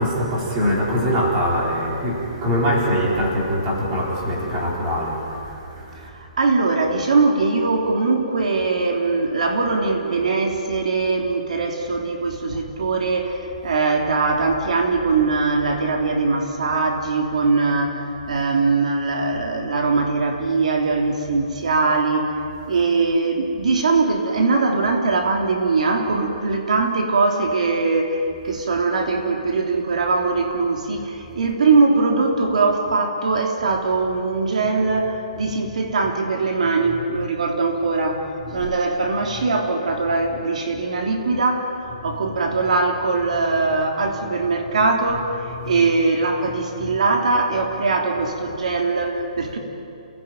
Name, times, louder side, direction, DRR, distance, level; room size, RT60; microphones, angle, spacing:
voice 1, 0.0-6.1 12.5-12.6 22.7-22.8 35.4-35.5 37.2-37.3 38.4-38.7 39.4-39.5 41.9-42.2 45.5-45.8 46.8-47.0, equal, 20° right, -3 dB, 3.9 m, -24 dB
voice 2, 6.1-22.3 22.7-38.3 38.5-49.6, right 3 dB, 70° right, 3 dB, 3.2 m, -21 dB
29.0 x 18.0 x 9.1 m, 2.7 s
hypercardioid pair, 180°, 4 cm